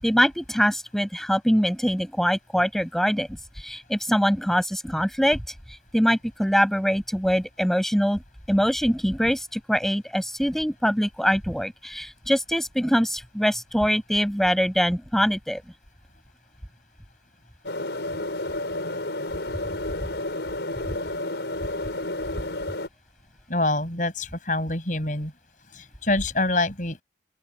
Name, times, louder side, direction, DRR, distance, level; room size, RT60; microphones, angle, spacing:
voice 1, 0.0-3.3 3.6-5.4 5.9-8.2 8.5-15.6, equal, ahead, 6.3 m, -23 dB
sound 1, 17.6-22.9, left 2 dB, 85° left, 5.5 m, -31 dB
voice 2, 23.5-25.3 25.7-27.0, left 2 dB, 45° left, 7.6 m, -26 dB
open air
head